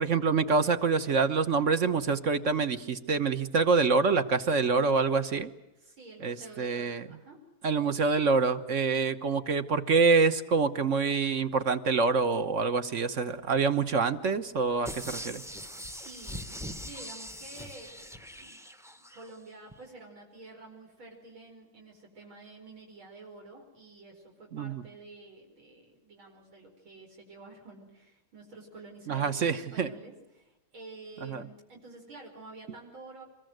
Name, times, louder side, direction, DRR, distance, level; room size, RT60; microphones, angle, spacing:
voice 1, 0.0-5.5 6.2-7.1 7.6-15.4 24.5-24.8 29.1-29.9 31.2-31.4, right 4 dB, 45° right, 11 dB, 1.3 m, -26 dB
voice 2, 5.8-7.5 15.9-18.6 18.9-33.3, right 2 dB, 80° right, 0 dB, 5.6 m, -50 dB
sound 1, 14.8-19.3 19.7-19.8, equal, 5° right, 0.5 m, -42 dB
25.5 x 22.0 x 7.8 m, 0.98 s
omnidirectional pair, 2.2 m